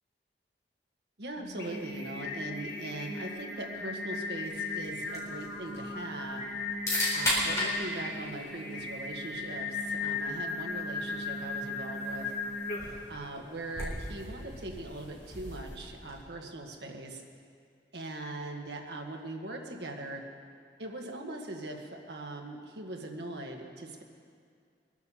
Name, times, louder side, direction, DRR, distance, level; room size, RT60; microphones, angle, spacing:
voice 1, 1.2-6.5 7.1-12.3 13.1-17.2 17.9-20.2 20.8-24.0, right 2 dB, 70° right, 2 dB, 1.7 m, -41 dB
Singing, 1.4-13.1, left 3 dB, 55° left, 2.6 m, -37 dB
sound 1, 4.4-16.4, left 1 dB, 15° left, 4.0 m, -38 dB
22.5 x 8.2 x 7.1 m, 2.3 s
head